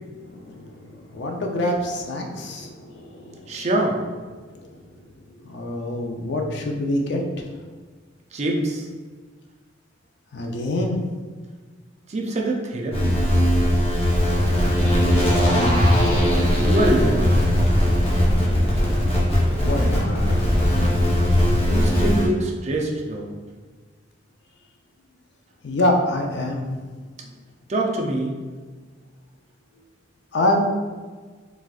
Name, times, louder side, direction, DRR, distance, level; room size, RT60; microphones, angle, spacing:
voice 1, 0.2-0.7 1.1-3.5 4.6-4.7 5.4-7.2 10.3-11.0 14.5-14.8 15.2-16.1 19.6-20.4 25.6-26.6 30.3-30.7, left 1 dB, 65° left, 2 dB, 0.5 m, -25 dB
voice 2, 3.5-4.0 8.3-8.8 12.1-13.2 16.6-17.4 21.7-23.3 27.7-28.4, right 1 dB, 35° right, 1 dB, 0.4 m, -24 dB
sound 1, 12.9-22.3, equal, 30° left, 0.8 m, -19 dB
4.1 x 2.4 x 2.4 m, 1.4 s
head